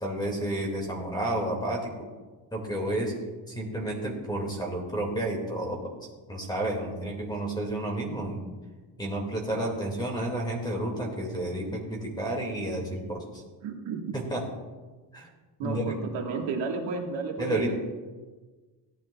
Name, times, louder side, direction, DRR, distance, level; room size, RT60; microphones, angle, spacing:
voice 1, 0.0-1.9 2.5-3.1 3.5-5.8 6.3-8.5 9.0-13.4 14.1-14.4 15.1-15.3 15.6-16.0 17.4-17.7, right 1 dB, 10° left, 0 dB, 2.0 m, -31 dB
voice 2, 13.6-14.1 15.6-17.7, right 4 dB, 70° right, 1 dB, 1.6 m, -32 dB
17.0 x 12.0 x 2.3 m, 1.3 s
cardioid pair, 175°, 47 cm